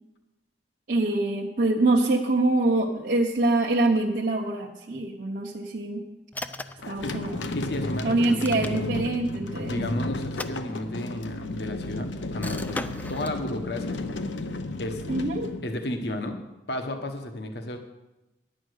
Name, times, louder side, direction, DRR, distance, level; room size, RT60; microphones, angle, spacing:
voice 1, 0.9-6.0 6.9-7.4 8.0-9.8 15.1-15.5, right 2 dB, 45° right, -3 dB, 0.9 m, -24 dB
sound 1, 6.3-6.9 8.2-9.1 10.2-11.2 12.4-13.4, left 2 dB, 10° left, 0.3 m, -37 dB
sound 2, 6.8-16.3, left 2 dB, 85° left, 0.9 m, -33 dB
voice 2, 6.8-7.1 7.5-8.4 9.7-13.9 14.8-15.0 15.6-16.4 16.7-17.8, left 1 dB, 65° left, 6 dB, 1.2 m, -33 dB
11.0 x 8.8 x 6.4 m, 1.0 s
head